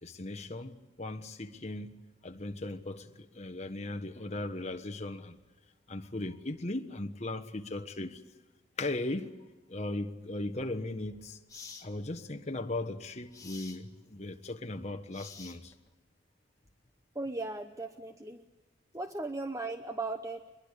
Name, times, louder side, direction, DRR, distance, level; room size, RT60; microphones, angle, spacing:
voice 1, 0.0-2.0 2.2-5.4 5.9-8.2 8.8-9.3 9.7-11.4 11.8-15.7, left 2 dB, 35° left, 1.3 m, -37 dB
sound 1, 10.6-10.8 11.5-11.9 13.3-13.8 15.1-15.9, left 5 dB, 15° left, 1.5 m, -48 dB
voice 2, 17.1-18.5 18.9-20.5, right 2 dB, 15° right, 0.8 m, -37 dB
24.0 x 22.0 x 8.3 m
head